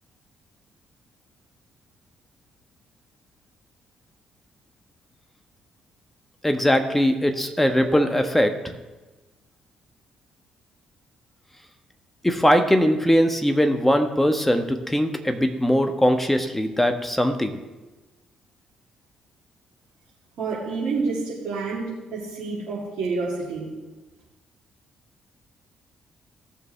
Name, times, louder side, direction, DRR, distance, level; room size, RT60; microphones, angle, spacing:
voice 1, 6.4-8.8 12.2-17.6, equal, 10° left, 6 dB, 1.3 m, -21 dB
voice 2, 20.4-23.7, right 4 dB, 55° right, -8 dB, 3.1 m, -28 dB
18.0 x 6.8 x 3.4 m, 1.2 s
figure-of-eight pair, 40°, 2 cm